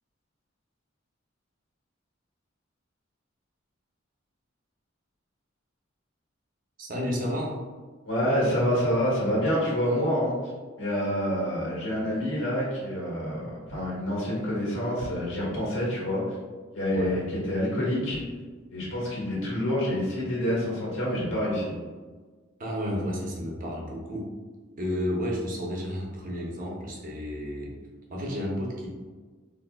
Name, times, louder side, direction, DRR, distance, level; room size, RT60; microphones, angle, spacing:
voice 1, 6.8-7.6 16.9-17.1 22.6-24.3 24.8-27.7 28.1-28.9, equal, 45° right, -2 dB, 0.7 m, -31 dB
voice 2, 8.0-10.5 10.8-16.4 16.7-18.2 18.7-21.7, equal, 90° left, -6 dB, 1.3 m, -27 dB
3.8 x 2.6 x 2.3 m, 1.4 s
head